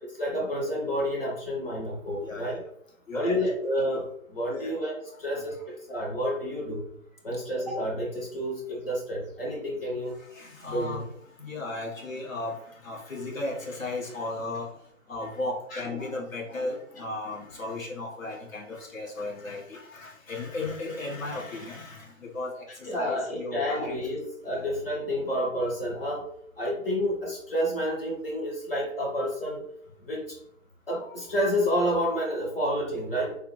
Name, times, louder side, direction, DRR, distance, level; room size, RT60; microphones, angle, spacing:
voice 1, 0.2-2.6 3.1-5.6 5.9-6.9 7.2-10.1 10.7-11.0 15.7-15.8 22.8-26.2 26.6-29.6 30.0-30.4 30.9-33.4, equal, 45° left, -2 dB, 0.8 m, -29 dB
voice 2, 2.2-2.6 3.1-3.6 4.5-4.7 5.3-5.4 10.1-14.8 15.1-24.0 24.5-24.8, left 2 dB, 75° left, -2 dB, 1.3 m, -35 dB
3.3 x 2.0 x 3.0 m, 0.69 s
figure-of-eight pair, 155°, 40 cm